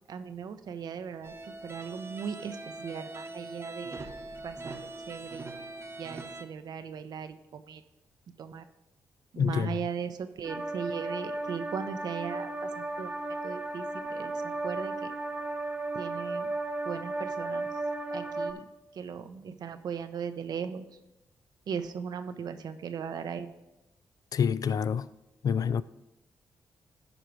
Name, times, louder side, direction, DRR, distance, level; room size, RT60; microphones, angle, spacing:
voice 1, 0.1-1.3 1.6-4.1 4.4-5.5 6.0-7.8 8.4-8.6 9.3-12.5 12.8-13.1 13.4-15.1 15.9-16.5 16.9-17.7 18.1-18.6 19.0-20.9 21.7-23.5, right 7 dB, 70° right, 0.7 m, -38 dB
sound 1, 1.2-6.4, right 2 dB, 40° right, 1.0 m, -42 dB
voice 2, 9.4-9.7 24.3-25.1 25.4-25.8, left 7 dB, 55° left, 0.4 m, -27 dB
sound 2, 10.4-18.5, right 2 dB, 15° right, 1.1 m, -34 dB
13.0 x 5.0 x 4.6 m
supercardioid pair, 55°, 7 cm